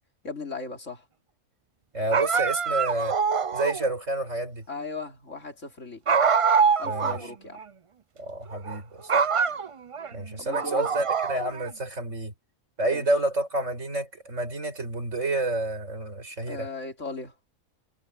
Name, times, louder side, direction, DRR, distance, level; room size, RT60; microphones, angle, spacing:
voice 1, 0.2-1.0 4.7-6.0 6.8-7.6 10.4-10.9 12.9-13.0 16.5-17.3, left 3 dB, 65° left, 3.6 m, -37 dB
voice 2, 1.9-3.2 3.5-4.6 6.8-7.3 8.2-9.1 10.1-12.3 12.8-16.7, right 2 dB, 65° right, 5.6 m, -29 dB
sound 1, 2.1-3.9 6.1-7.2 7.6-7.7 8.5-8.8 9.1-10.1 10.5-11.7, right 6 dB, 45° right, 0.4 m, -24 dB
omnidirectional pair, 1.4 m